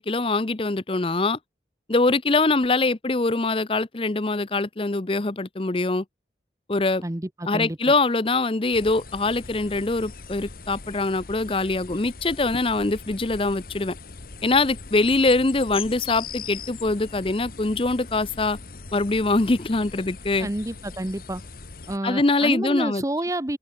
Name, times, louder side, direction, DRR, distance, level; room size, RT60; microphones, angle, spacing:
voice 1, 0.0-1.4 1.9-6.0 6.7-7.0 7.5-13.9 14.4-18.6 18.9-20.5 22.0-23.0, left 3 dB, 30° left, 0.7 m, -23 dB
voice 2, 7.0-7.8 20.4-21.4 21.9-23.6, right 1 dB, 20° right, 0.9 m, -29 dB
sound 1, 8.7-22.0, left 4 dB, 50° left, 1.4 m, -40 dB
open air
head